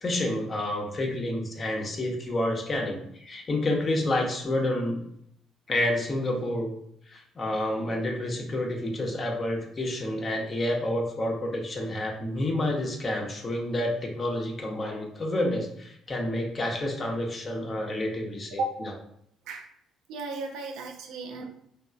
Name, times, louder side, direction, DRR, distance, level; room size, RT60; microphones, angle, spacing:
voice 1, 0.0-5.0 5.7-6.7 7.1-18.6, left 1 dB, 40° left, 1 dB, 0.7 m, -29 dB
voice 2, 18.5-18.8 19.5-19.7 20.1-21.5, right 2 dB, 70° right, 4 dB, 0.4 m, -34 dB
3.0 x 2.0 x 2.4 m, 0.71 s
hypercardioid pair, 50°, 0 cm